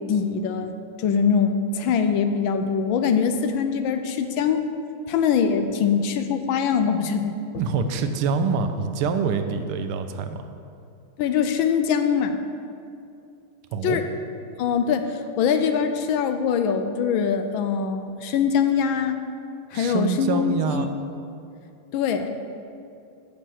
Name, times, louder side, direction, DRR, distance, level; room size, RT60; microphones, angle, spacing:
voice 1, 0.1-0.7 1.0-4.7 5.1-7.4 11.2-12.4 13.8-14.0 14.6-19.2 19.7-20.9 21.9-22.3, left 7 dB, 75° left, 8 dB, 1.3 m, -23 dB
voice 2, 7.6-10.4 13.7-14.0 19.7-20.9, right 5 dB, 90° right, 8 dB, 1.6 m, -25 dB
8.9 x 5.5 x 7.8 m, 2.5 s
omnidirectional pair, 2.3 m